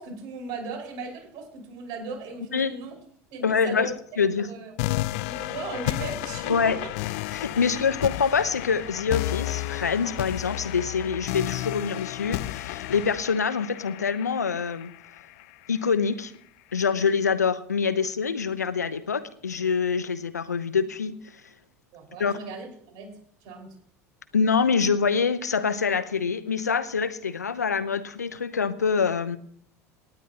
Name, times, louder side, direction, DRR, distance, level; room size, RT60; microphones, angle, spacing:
voice 1, 0.0-3.0 3.3-4.0 4.4-4.7 5.1-6.9 21.9-23.8, right 4 dB, 55° right, 1 dB, 5.2 m, -37 dB
voice 2, 3.4-4.5 6.5-6.8 7.3-14.9 15.7-16.3 16.7-21.1 22.2-22.3 24.3-29.4, left 5 dB, 90° left, 14 dB, 0.8 m, -25 dB
sound 1, 4.8-15.8, left 17 dB, 65° left, 0.5 m, -32 dB
18.5 x 10.0 x 2.9 m, 0.63 s
hypercardioid pair, 75°, 9 cm